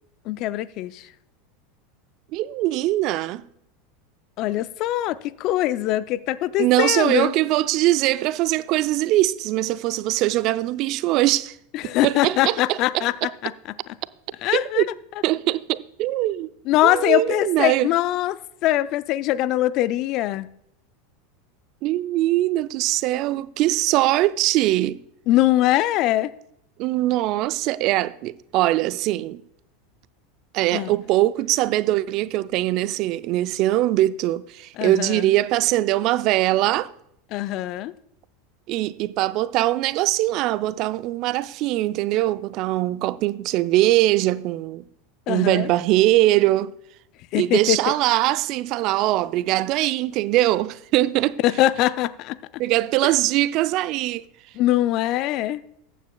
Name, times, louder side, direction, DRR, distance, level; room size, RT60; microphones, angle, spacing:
voice 1, 0.3-1.1 4.4-7.3 11.7-13.5 14.4-14.8 16.7-20.5 25.3-26.3 30.7-30.9 34.8-35.3 37.3-37.9 45.3-45.7 47.3-47.8 51.4-52.4 54.6-55.6, left 14 dB, 50° left, 0.4 m, -22 dB
voice 2, 2.3-3.5 6.6-11.6 11.8-13.3 14.5-14.9 15.2-16.5 16.8-17.9 21.8-25.0 26.8-29.4 30.5-36.9 38.7-44.8 45.3-46.7 47.4-51.4 52.6-54.3, right 16 dB, 50° right, 0.4 m, -22 dB
14.5 x 9.2 x 2.3 m
hypercardioid pair, 85°, 0 cm